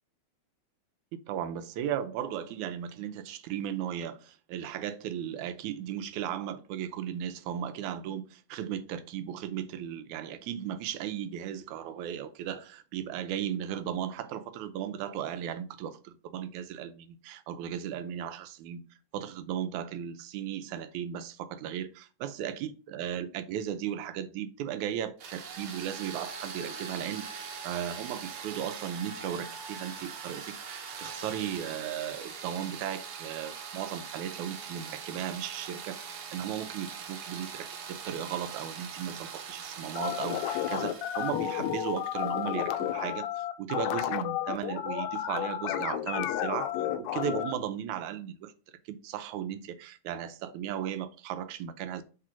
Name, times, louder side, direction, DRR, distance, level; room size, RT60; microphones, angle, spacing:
voice 1, 1.1-18.8 19.1-48.5 48.9-52.0, right 10 dB, 85° right, 2.0 m, -36 dB
sound 1, 25.2-42.9, right 6 dB, 60° right, 1.5 m, -42 dB
sound 2, 40.0-47.5, left 11 dB, 80° left, 1.8 m, -32 dB
4.9 x 4.1 x 5.7 m
omnidirectional pair, 3.3 m